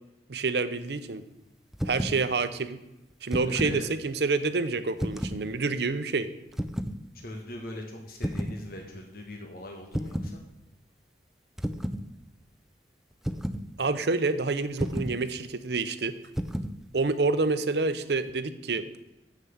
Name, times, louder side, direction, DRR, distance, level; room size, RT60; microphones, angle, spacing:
voice 1, 0.3-1.2 1.9-2.8 3.2-6.3 13.8-16.1 16.9-18.9, right 3 dB, 65° right, 11 dB, 0.7 m, -28 dB
sound 1, 1.7-2.2 3.1-3.8 5.0-5.4 6.5-7.0 8.2-8.6 9.9-10.4 11.6-12.0 13.2-13.7 14.8-15.2 16.3-16.8, equal, ahead, 0.4 m, -31 dB
voice 2, 3.4-3.9 7.1-10.4, left 1 dB, 55° left, 2 dB, 1.3 m, -40 dB
7.5 x 6.7 x 7.2 m, 0.92 s
head